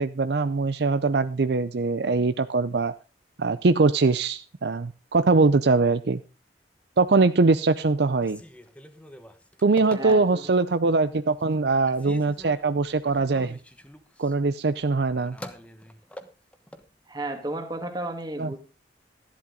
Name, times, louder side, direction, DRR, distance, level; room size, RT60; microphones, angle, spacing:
voice 1, 0.0-2.9 3.4-6.2 7.0-8.4 9.6-13.6 14.2-15.4 18.4-18.5, right 3 dB, 65° right, 12 dB, 0.5 m, -22 dB
Telephone, 8.1-10.6 11.1-11.6 11.9-16.9, equal, 5° left, 1.2 m, -45 dB
voice 2, 9.9-10.5 17.1-18.6, right 1 dB, 25° right, 6 dB, 2.0 m, -33 dB
13.5 x 11.5 x 3.8 m, 0.32 s
head